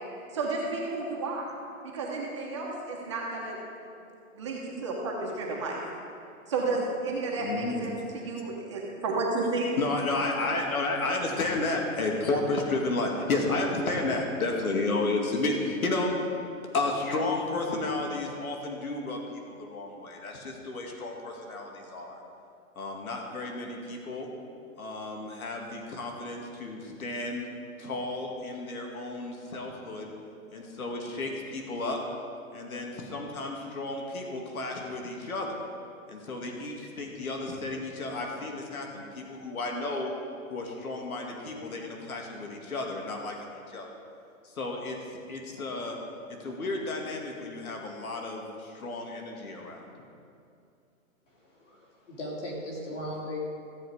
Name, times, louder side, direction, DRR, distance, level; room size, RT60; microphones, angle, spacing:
voice 1, 0.1-1.5 1.9-3.6 4.3-5.8 6.5-9.7, right 3 dB, 20° right, -3 dB, 0.9 m, -32 dB
voice 2, 7.4-7.9 9.8-16.1 16.7-22.2 22.8-24.3 24.8-27.5 27.8-30.1 30.5-32.0 32.5-35.6 36.1-40.1 40.5-43.9 44.4-45.0 45.3-46.0 46.4-49.8, left 2 dB, 85° left, 1 dB, 2.1 m, -32 dB
voice 3, 51.3-53.4, left 1 dB, 60° left, -3 dB, 3.4 m, -38 dB
14.5 x 7.7 x 4.8 m, 2.5 s
hypercardioid pair, 175°, 42 cm